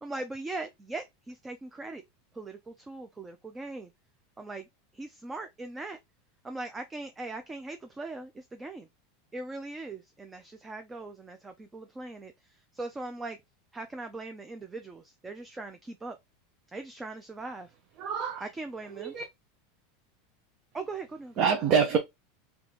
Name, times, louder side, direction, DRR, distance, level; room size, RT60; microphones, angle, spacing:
voice 1, 0.0-2.0 2.3-3.9 4.4-4.7 4.9-6.0 6.4-8.9 9.3-13.4 13.7-16.2 16.7-17.7 18.4-19.1 20.7-21.5, right 2 dB, 15° right, 0.6 m, -40 dB
voice 2, 18.0-18.4 19.0-19.2 21.4-22.0, right 6 dB, 50° right, 0.9 m, -25 dB
3.4 x 3.4 x 3.8 m
hypercardioid pair, 105°, 0 cm